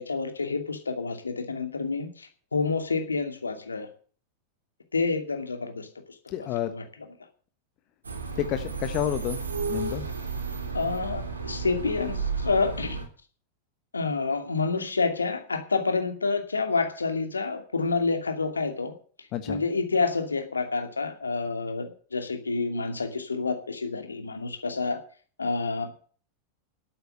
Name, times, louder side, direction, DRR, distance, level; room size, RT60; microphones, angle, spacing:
voice 1, 0.0-3.9 4.9-5.9 6.4-6.8 10.7-13.0 13.9-25.0 25.4-25.9, left 4 dB, 75° left, 5 dB, 2.5 m, -28 dB
voice 2, 6.3-6.7 8.4-9.4 9.7-10.1 19.3-19.6, left 12 dB, 40° left, 9 dB, 1.3 m, -29 dB
sound 1, 8.0-13.1, right 4 dB, 75° right, 3.3 m, -32 dB
11.5 x 8.8 x 8.2 m, 0.42 s
figure-of-eight pair, 90°, 0 cm